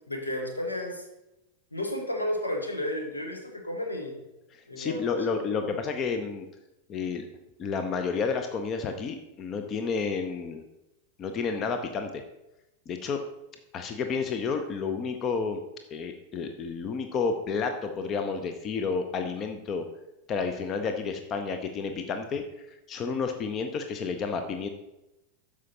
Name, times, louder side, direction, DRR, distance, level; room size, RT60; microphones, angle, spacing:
voice 1, 0.1-1.1 1.7-4.2 4.7-5.2 5.5-5.7, left 1 dB, 80° left, 2 dB, 1.4 m, -32 dB
voice 2, 4.5-6.5 6.9-7.2 7.6-10.6 11.2-12.2 12.9-13.2 13.7-15.6 15.9-19.8 20.3-22.4 22.9-24.7, left 5 dB, 30° left, 7 dB, 0.6 m, -30 dB
12.5 x 4.9 x 2.8 m, 0.95 s
figure-of-eight pair, 90°, 0 cm